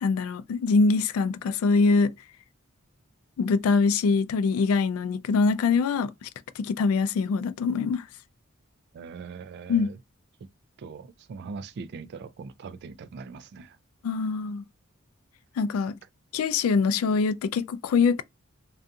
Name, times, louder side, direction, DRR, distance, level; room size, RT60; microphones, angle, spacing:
voice 1, 0.0-2.1 3.4-6.3 6.6-8.0 9.7-9.9 14.0-14.6 15.6-15.9 16.3-18.2, left 4 dB, 75° left, 0.3 m, -23 dB
voice 2, 8.9-10.0 10.8-13.8, right 5 dB, 55° right, 0.3 m, -41 dB
2.5 x 2.3 x 2.6 m
head